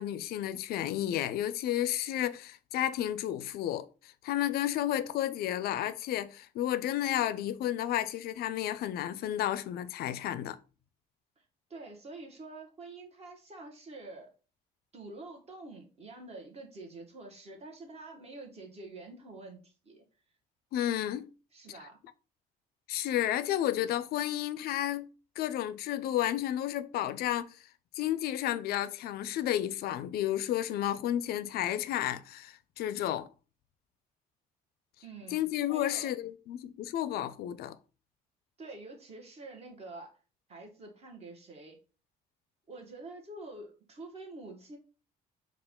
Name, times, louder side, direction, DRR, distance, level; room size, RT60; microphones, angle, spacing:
voice 1, 0.0-10.6 20.7-21.3 22.9-25.1 25.4-27.6 27.9-33.3 35.3-37.8, left 12 dB, 70° left, 0.4 m, -32 dB
voice 2, 11.7-14.3 14.9-20.0 21.5-22.0 35.0-36.1 38.6-40.2 40.5-41.8 42.7-44.8, right 2 dB, 40° right, 1.3 m, -47 dB
4.6 x 2.4 x 3.6 m
cardioid pair, 110°, 17 cm